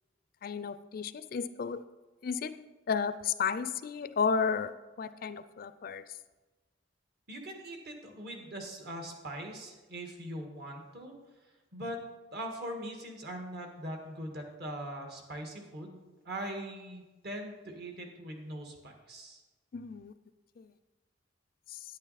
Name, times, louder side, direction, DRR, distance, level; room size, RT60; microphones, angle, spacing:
voice 1, 0.4-1.8 2.2-2.6 2.9-4.7 5.0-6.0 19.7-20.1 20.6-20.7, left 6 dB, 50° left, 13 dB, 0.4 m, -32 dB
voice 2, 7.3-11.1 11.7-12.0 12.3-19.4, right 1 dB, 60° right, 3 dB, 1.6 m, -41 dB
9.5 x 9.3 x 4.1 m, 1.2 s
head